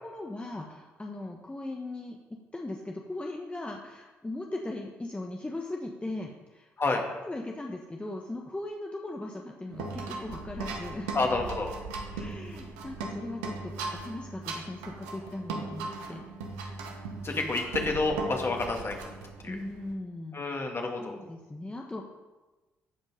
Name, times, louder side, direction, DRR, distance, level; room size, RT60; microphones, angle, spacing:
voice 1, 0.0-11.1 12.1-16.2 19.5-20.6 21.0-22.0, left 2 dB, 20° left, 1 dB, 1.3 m, -39 dB
sound 1, 9.7-19.9, right 3 dB, 85° right, 1.1 m, -38 dB
voice 2, 11.1-11.7 17.2-19.0 19.4-19.5 20.3-21.1, left 3 dB, 40° left, 2 dB, 2.3 m, -29 dB
14.0 x 5.2 x 5.1 m, 1.2 s
hypercardioid pair, 45°, 6 cm